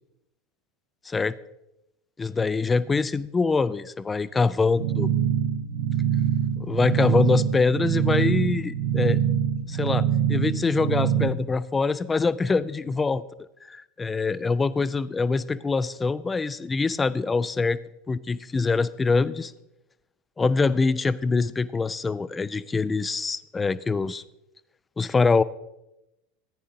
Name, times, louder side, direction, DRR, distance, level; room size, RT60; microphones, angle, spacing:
voice 1, 2.2-5.1 6.6-9.2 9.7-13.2 13.7-17.8 18.1-19.5 20.4-24.2 25.0-25.4, left 4 dB, 15° left, 17 dB, 0.4 m, -24 dB
sound 1, 4.8-11.3, right 9 dB, 60° right, 0.9 m, -24 dB
14.5 x 9.8 x 2.6 m, 0.90 s
figure-of-eight pair, 80°, 0 cm